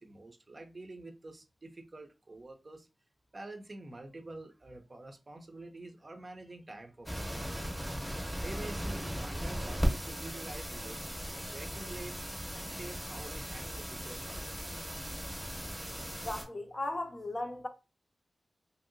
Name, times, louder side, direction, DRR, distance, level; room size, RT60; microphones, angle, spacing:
voice 1, 0.0-2.9 3.3-12.1 12.5-14.6, right 2 dB, 40° right, 0.6 m, -48 dB
sound 1, 7.1-16.4, equal, ahead, 0.9 m, -37 dB
voice 2, 16.2-17.7, left 2 dB, 30° left, 0.5 m, -36 dB
2.8 x 2.8 x 2.6 m
wide cardioid pair, 95°, 0 cm